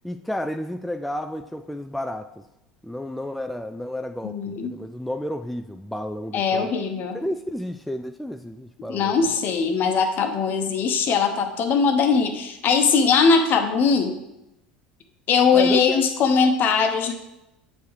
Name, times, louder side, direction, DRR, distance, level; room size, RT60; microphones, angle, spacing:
voice 1, 0.0-2.4 2.8-6.7 7.1-9.1 15.5-16.0, equal, ahead, 6 dB, 0.3 m, -31 dB
voice 2, 4.2-4.7 6.3-7.2 8.9-14.1 15.3-17.1, left 5 dB, 45° left, 7 dB, 0.9 m, -20 dB
7.9 x 4.6 x 3.3 m, 0.89 s
hypercardioid pair, 75°, 4 cm